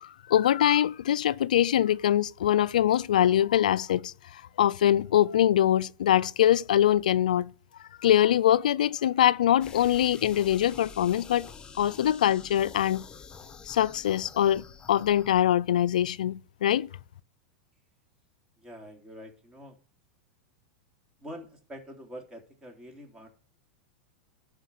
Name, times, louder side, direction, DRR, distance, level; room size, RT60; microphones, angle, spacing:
voice 1, 0.0-7.5 8.0-11.5 11.8-13.0 13.7-16.9, left 11 dB, 80° left, 0.4 m, -23 dB
sound 1, 9.6-15.4, left 6 dB, 20° left, 1.2 m, -47 dB
voice 2, 18.6-19.8 21.2-23.3, equal, 20° right, 3.4 m, -45 dB
11.5 x 5.1 x 8.3 m
hypercardioid pair, 110°, 4 cm